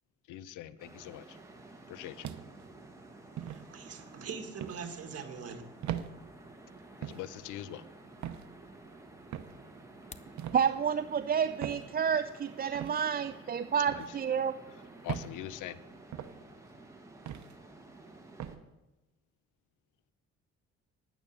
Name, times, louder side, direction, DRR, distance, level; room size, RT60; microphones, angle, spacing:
voice 1, 0.3-1.4 1.9-2.3 7.0-7.9 12.9-13.0 13.9-14.1 15.0-15.8, left 13 dB, 90° left, 16 dB, 0.6 m, -43 dB
sound 1, 0.8-18.6, right 2 dB, 10° right, 1.8 m, -52 dB
sound 2, 2.2-2.7 3.4-3.6 4.6-4.8 5.8-6.1 7.0-7.3 8.2-8.5 9.3-9.6 10.4-10.6 11.6-11.9 12.7-13.0 13.9-14.1 15.1-15.3 16.1-16.4 17.3-17.5 18.4-18.6, right 10 dB, 70° right, 0.8 m, -39 dB
voice 2, 3.1-5.6, right 6 dB, 50° right, 5 dB, 1.9 m, -43 dB
sound 3, 9.9-10.4, left 5 dB, 20° left, 0.6 m, -51 dB
voice 3, 10.5-14.6, right 7 dB, 30° right, 11 dB, 0.4 m, -30 dB
10.5 x 9.1 x 6.7 m, 1.1 s
cardioid pair, 90°, 30 cm